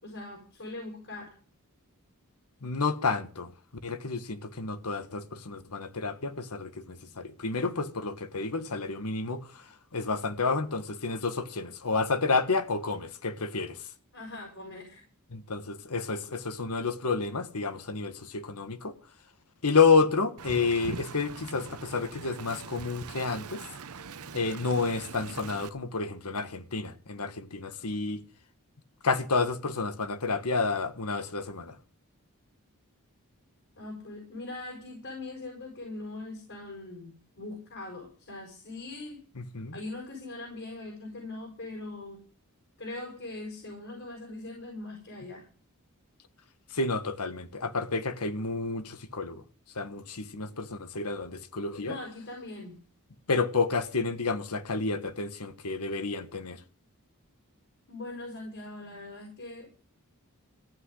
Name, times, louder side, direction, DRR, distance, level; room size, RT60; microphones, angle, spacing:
voice 1, 0.0-1.4 14.1-15.0 33.8-39.2 39.7-42.2 42.8-45.5 51.8-52.8 57.9-59.7, left 2 dB, 60° left, 5.3 m, -41 dB
voice 2, 2.6-3.5 3.8-13.9 15.3-18.9 19.6-23.6 24.3-28.2 29.0-31.8 39.4-39.8 46.7-49.4 49.7-52.0 53.3-56.6, left 4 dB, 85° left, 1.4 m, -30 dB
Wind, 20.4-25.7, right 5 dB, 80° right, 0.8 m, -42 dB
14.5 x 6.1 x 9.8 m
head